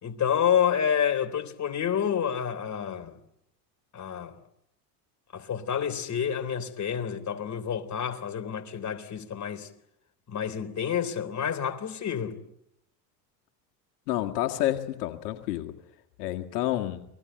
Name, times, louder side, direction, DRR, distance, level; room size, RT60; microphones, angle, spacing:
voice 1, 0.0-3.2 3.9-4.4 5.3-9.7 10.3-12.4, left 8 dB, 35° left, 3.6 m, -28 dB
voice 2, 14.1-15.7 16.2-17.1, left 14 dB, 80° left, 1.9 m, -29 dB
28.5 x 20.5 x 9.2 m
hypercardioid pair, 85°, 46 cm